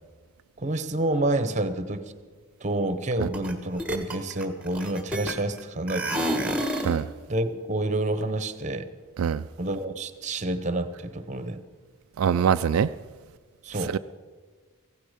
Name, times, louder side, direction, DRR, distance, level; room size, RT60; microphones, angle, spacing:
voice 1, 0.6-2.1 2.6-6.9 7.3-8.9 9.6-11.6 13.6-14.0, right 2 dB, 35° right, 0.9 m, -29 dB
sound 1, 3.3-3.5 3.8-5.6 5.9-7.0, right 1 dB, 5° right, 1.3 m, -29 dB
voice 2, 12.2-12.9 13.9-14.0, right 7 dB, 80° right, 0.4 m, -23 dB
16.0 x 15.5 x 5.1 m
head